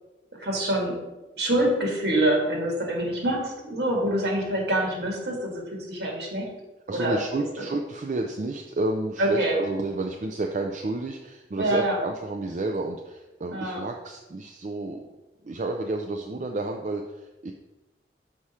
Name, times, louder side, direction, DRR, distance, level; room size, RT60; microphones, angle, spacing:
voice 1, 0.4-1.0 1.4-5.6 5.9-6.5 6.9-7.4 9.2-9.6 11.6-12.0 13.5-13.8, right 1 dB, 65° right, -1 dB, 1.9 m, -25 dB
voice 2, 6.9-15.0 15.4-17.5, right 2 dB, 40° right, 2 dB, 0.4 m, -31 dB
6.1 x 4.8 x 4.2 m, 1.1 s
head